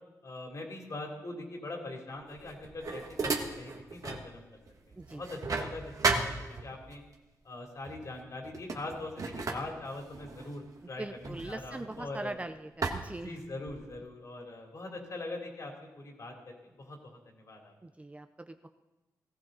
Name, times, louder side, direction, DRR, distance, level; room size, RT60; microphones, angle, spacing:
voice 1, 0.2-4.6 4.9-7.0 7.4-12.4 13.2-17.7, left 2 dB, 55° left, 1 dB, 3.3 m, -42 dB
sound 1, 2.3-4.3 4.7-7.0 7.8-8.1 8.4-12.3 12.8-13.9, right 3 dB, 60° right, 1.5 m, -35 dB
voice 2, 11.0-13.3 17.8-18.7, right 2 dB, 20° right, 8 dB, 0.6 m, -41 dB
17.5 x 15.5 x 4.0 m, 1.0 s
wide cardioid pair, 95°, 7 cm